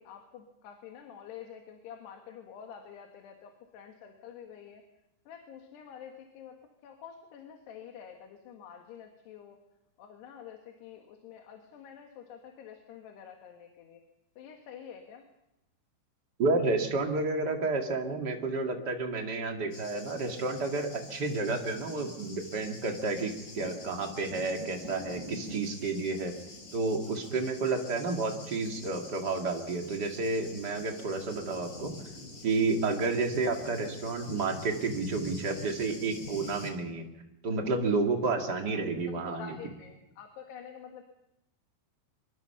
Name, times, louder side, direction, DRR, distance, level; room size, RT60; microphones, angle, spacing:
voice 1, 0.0-4.8 5.3-6.6 6.8-9.6 10.0-14.0 14.4-15.3 21.5-21.6 38.7-38.8 39.3-41.0, left 8 dB, 75° left, 3 dB, 3.7 m, -48 dB
voice 2, 16.4-26.3 26.7-31.9 32.4-37.0 37.4-39.5, right 3 dB, 30° right, 2 dB, 2.1 m, -30 dB
Thunder, 19.7-36.7, left 1 dB, 30° left, 3.4 m, -46 dB
25.5 x 22.5 x 5.8 m, 0.90 s
omnidirectional pair, 4.8 m